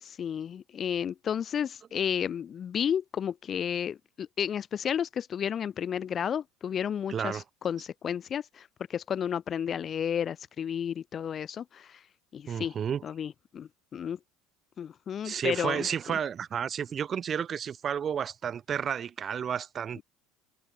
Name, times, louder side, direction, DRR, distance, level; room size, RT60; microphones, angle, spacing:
voice 1, 0.0-12.0 12.3-12.7 13.0-14.2 14.8-16.2 20.0-20.1, left 8 dB, 40° left, 0.5 m, -32 dB
voice 2, 7.1-7.4 12.5-13.0 15.2-20.0, right 8 dB, 40° right, 0.6 m, -31 dB
hypercardioid pair, 75°, 0 cm